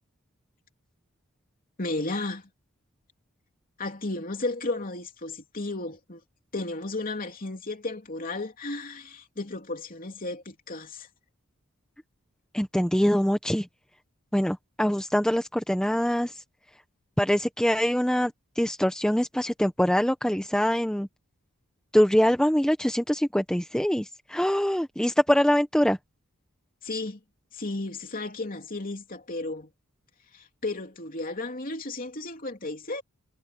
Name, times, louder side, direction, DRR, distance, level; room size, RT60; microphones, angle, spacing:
voice 1, 1.8-2.5 3.8-6.2 6.5-11.1 26.8-27.2 27.5-29.7 30.3-33.0, left 2 dB, 40° left, 3.1 m, -34 dB
voice 2, 12.5-13.7 14.3-16.4 17.2-21.1 21.9-26.0, equal, 5° left, 0.8 m, -24 dB
head